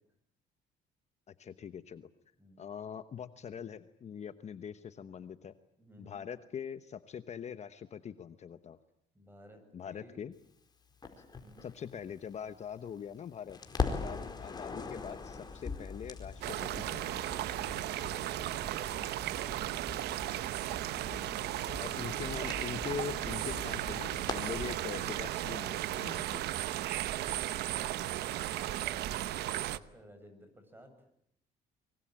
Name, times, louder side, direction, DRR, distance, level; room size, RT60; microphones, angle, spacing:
voice 1, 1.3-2.1 2.6-5.5 6.0-8.8 9.7-10.3 11.6-13.6 13.9-17.2 21.8-26.5, left 8 dB, 40° left, 11 dB, 1.1 m, -43 dB
voice 2, 5.8-6.2 9.1-10.2 11.4-11.7 27.1-31.2, equal, 10° right, 8 dB, 7.7 m, -56 dB
Crackle, 11.0-13.2 13.5-24.8, left 4 dB, 25° left, 4.6 m, -42 dB
sound 1, 16.4-29.8, right 14 dB, 75° right, 1.0 m, -35 dB
24.0 x 23.0 x 8.9 m, 0.71 s
cardioid pair, 110°, 17 cm